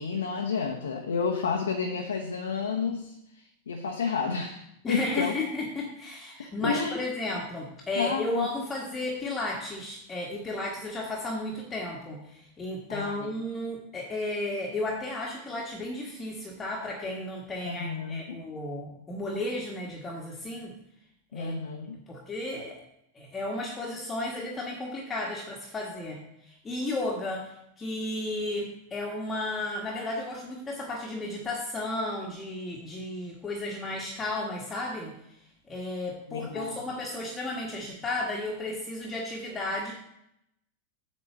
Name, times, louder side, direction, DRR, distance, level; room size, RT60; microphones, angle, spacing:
voice 1, 0.0-5.3 6.6-7.0 7.9-8.5 12.9-13.3 17.6-18.4 21.3-22.0 36.3-36.8, left 5 dB, 65° left, 1 dB, 1.0 m, -31 dB
voice 2, 4.8-20.8 21.3-21.5 22.1-22.8 23.1-35.1 35.7-39.9, left 2 dB, 15° left, -2 dB, 1.5 m, -33 dB
8.4 x 4.3 x 6.9 m, 0.79 s
figure-of-eight pair, 90°, 0 cm